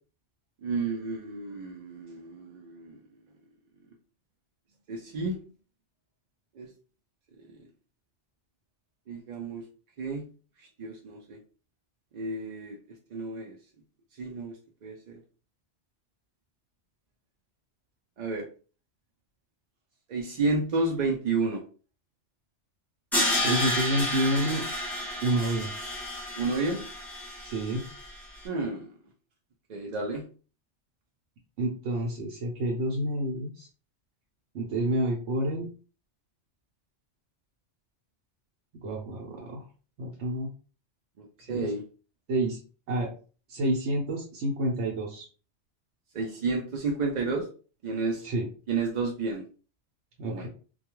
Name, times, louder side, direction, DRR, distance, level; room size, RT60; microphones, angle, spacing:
voice 1, 0.6-3.0 4.9-5.4 6.6-6.7 9.1-9.6 10.0-10.2 10.8-11.4 12.1-12.8 13.1-13.6 14.2-14.5 14.8-15.2 18.2-18.4 20.1-21.6 26.4-26.8 28.4-28.9 29.7-30.2 41.5-41.8 46.1-47.5 47.8-48.2 48.7-49.4 50.3-50.5, right 3 dB, 60° right, 0 dB, 0.4 m, -30 dB
Crash cymbal, 23.1-28.2, left 1 dB, ahead, 0.6 m, -31 dB
voice 2, 23.4-24.6 25.2-25.7 27.4-27.9 31.6-33.7 34.5-35.7 38.8-39.6 40.0-40.5 41.5-41.7 42.3-42.6 42.9-43.1 43.5-45.3 48.2-48.4 50.2-50.5, right 1 dB, 85° right, -1 dB, 1.0 m, -29 dB
2.2 x 2.2 x 2.9 m, 0.37 s
omnidirectional pair, 1.2 m